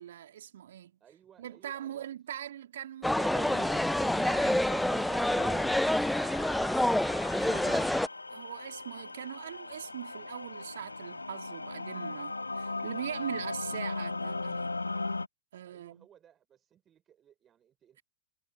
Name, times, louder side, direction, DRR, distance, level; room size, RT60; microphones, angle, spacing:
voice 1, 0.0-0.9 1.4-5.8 7.4-14.7 15.5-16.1, right 11 dB, 60° right, 2.1 m, -42 dB
voice 2, 1.0-2.1 15.6-18.0, right 9 dB, 25° right, 5.1 m, -59 dB
sound 1, 3.0-8.1, left 1 dB, 5° left, 0.4 m, -27 dB
sound 2, 3.3-15.3, left 3 dB, 80° left, 1.1 m, -39 dB
figure-of-eight pair, 90°, 0 cm